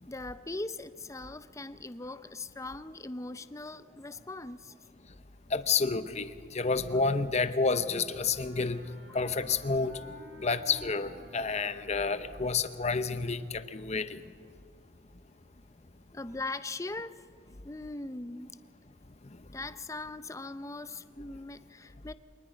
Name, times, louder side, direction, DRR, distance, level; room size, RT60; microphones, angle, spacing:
voice 1, 0.1-4.7 16.1-17.2 17.6-18.6 19.5-22.1, left 2 dB, 15° left, 13 dB, 0.6 m, -40 dB
voice 2, 5.5-8.8 9.1-10.0 10.4-14.2, left 4 dB, 35° left, 11 dB, 0.9 m, -29 dB
Wind instrument woodwind instrument, 8.0-13.4, equal, 75° right, 5.7 m, -52 dB
26.0 x 19.5 x 5.2 m, 2.3 s
head